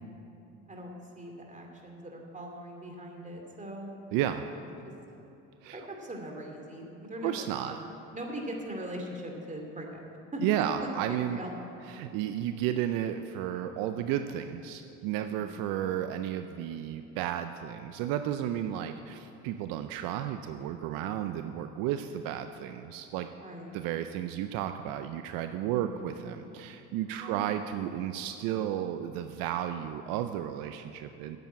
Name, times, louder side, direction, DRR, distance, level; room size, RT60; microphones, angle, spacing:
voice 1, 0.7-4.5 5.7-7.8 8.1-10.0 10.3-10.4 10.8-11.5 15.2-15.6 23.4-23.8 25.7-26.1 27.2-27.5, right 1 dB, 20° right, 1 dB, 2.5 m, -41 dB
voice 2, 4.1-4.4 5.6-5.8 7.2-7.8 10.4-11.4 11.9-23.3 23.7-31.4, right 11 dB, 75° right, 8 dB, 0.6 m, -33 dB
9.1 x 7.9 x 8.5 m, 2.8 s
supercardioid pair, 75°, 34 cm